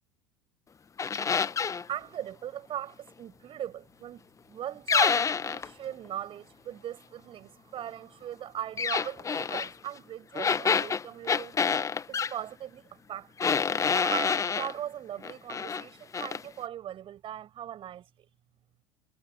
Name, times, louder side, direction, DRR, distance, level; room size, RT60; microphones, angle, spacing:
sound 1, 1.0-1.8 4.9-5.7 8.8-9.7 10.4-12.3 13.4-14.7 15.2-15.8 16.1-16.4, left 6 dB, 20° left, 1.6 m, -27 dB
voice 1, 1.9-4.2 4.5-11.6 12.1-13.5 14.0-18.0, right 11 dB, 40° right, 7.5 m, -39 dB
figure-of-eight pair, 70°, 15 cm